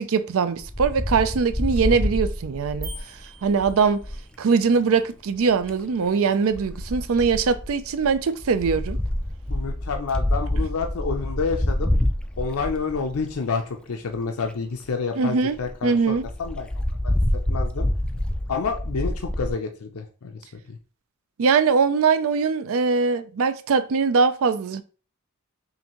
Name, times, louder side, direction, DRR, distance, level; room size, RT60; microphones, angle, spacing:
voice 1, 0.0-2.9 3.4-4.0 4.4-9.0 15.2-15.6 15.8-16.3 21.4-24.8, right 5 dB, 70° right, 0.4 m, -21 dB
Wind, 0.6-4.3 5.4-5.8 6.5-13.5 14.1-14.2 14.4-14.5 14.9-15.0 15.3-15.4 15.6-15.7 16.2-19.5, left 1 dB, 5° left, 0.3 m, -27 dB
sound 1, 2.8-4.4, right 2 dB, 15° right, 0.7 m, -43 dB
voice 2, 9.5-11.9 12.4-16.7 17.0-17.1 17.5-17.9 18.5-20.8, left 5 dB, 75° left, 0.5 m, -29 dB
5.6 x 2.6 x 3.0 m
head